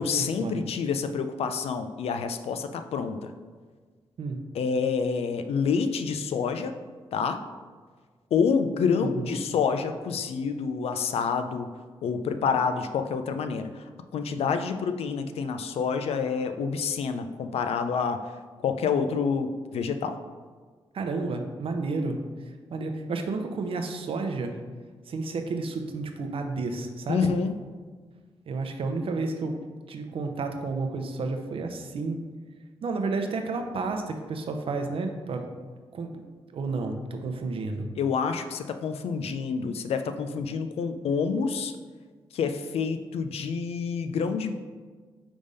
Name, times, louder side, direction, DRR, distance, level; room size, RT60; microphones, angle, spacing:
voice 1, 0.0-3.3 4.5-6.7 7.1-7.4 8.3-11.7 12.0-18.3 18.6-20.2 27.1-27.6 38.0-41.8 42.3-44.6, left 5 dB, 85° left, 9 dB, 0.4 m, -28 dB
voice 2, 9.0-9.4 20.9-22.2 22.7-24.5 25.1-27.3 28.5-29.5 29.9-32.2 32.8-35.5 35.9-36.2 36.5-37.9, right 3 dB, 65° right, 5 dB, 0.7 m, -31 dB
5.1 x 3.5 x 5.3 m, 1.5 s
cardioid pair, 105°, 10 cm